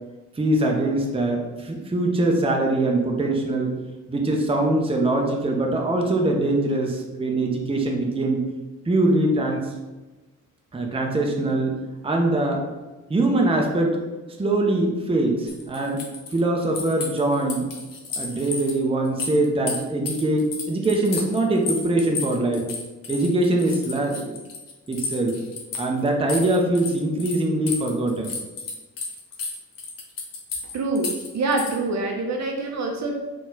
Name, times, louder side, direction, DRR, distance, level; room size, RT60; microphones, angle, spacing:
voice 1, 0.4-3.7 4.1-8.4 8.9-9.7 10.7-11.8 12.0-12.6 13.1-14.0 14.4-16.0 16.3-17.7 18.2-22.7 23.1-24.3 24.9-25.4 25.8-28.3, right 2 dB, 15° right, 1 dB, 0.7 m, -22 dB
sound 1, 15.5-18.7 19.0-27.4 27.7-31.8, left 4 dB, 50° left, 1.0 m, -32 dB
voice 2, 30.7-33.2, right 2 dB, 40° right, 1 dB, 0.7 m, -25 dB
3.8 x 2.5 x 3.8 m, 1.2 s
figure-of-eight pair, 40°, 41 cm